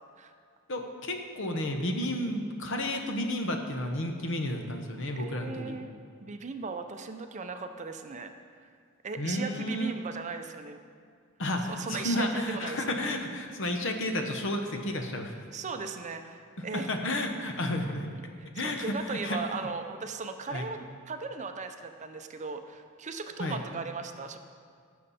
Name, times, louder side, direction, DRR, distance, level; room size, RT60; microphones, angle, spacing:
voice 1, 0.7-5.8 9.2-10.0 11.4-15.3 16.6-18.1 18.5-19.4 20.5-20.6 23.4-23.6, left 1 dB, 60° left, 4 dB, 1.0 m, -32 dB
voice 2, 5.2-5.9 6.2-8.3 8.6-8.7 9.0-10.8 11.7-13.0 15.5-17.0 18.4-24.4, right 4 dB, 35° right, 7 dB, 0.6 m, -37 dB
15.5 x 6.5 x 4.2 m, 2.1 s
head